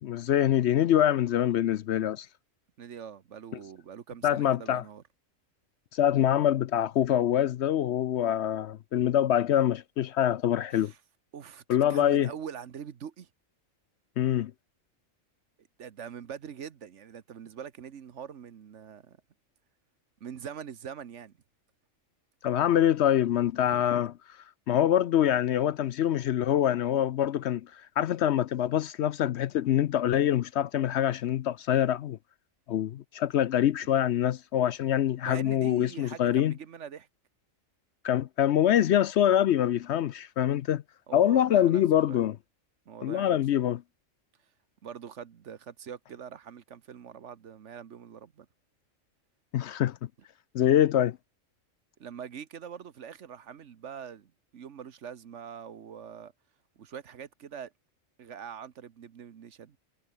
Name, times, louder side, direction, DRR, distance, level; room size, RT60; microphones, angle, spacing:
voice 1, 0.0-2.3 4.2-4.8 5.9-10.9 11.7-12.3 14.2-14.5 22.4-24.1 24.7-27.7 28.0-32.2 32.7-36.5 38.0-40.8 41.1-42.4 43.0-43.8 49.5-50.0 50.5-51.2, left 11 dB, 65° left, 0.8 m, -25 dB
voice 2, 2.8-5.0 10.7-11.0 11.3-11.6 11.9-13.3 15.8-19.2 20.2-21.3 23.6-23.9 35.3-37.1 41.1-42.2 42.9-43.4 44.8-48.5 52.0-56.3 56.8-57.7 58.2-59.8, right 8 dB, 65° right, 1.3 m, -43 dB
omnidirectional pair, 1.3 m